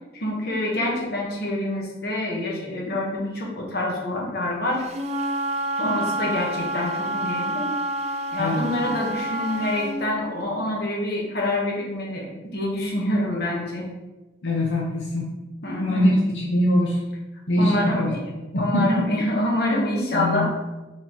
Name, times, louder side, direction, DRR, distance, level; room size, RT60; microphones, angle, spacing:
voice 1, 0.1-4.8 5.8-7.7 8.3-13.9 15.6-16.1 17.6-18.2 18.5-20.5, left 1 dB, 55° left, -2 dB, 1.1 m, -26 dB
Wind instrument woodwind instrument, 4.9-9.9, right 1 dB, 35° right, 0.3 m, -28 dB
voice 2, 8.4-8.7 14.4-15.3 15.8-17.0 17.5-18.1 18.5-19.1 20.1-20.5, left 1 dB, 85° left, -3 dB, 0.7 m, -22 dB
4.2 x 4.0 x 2.9 m, 1.1 s
head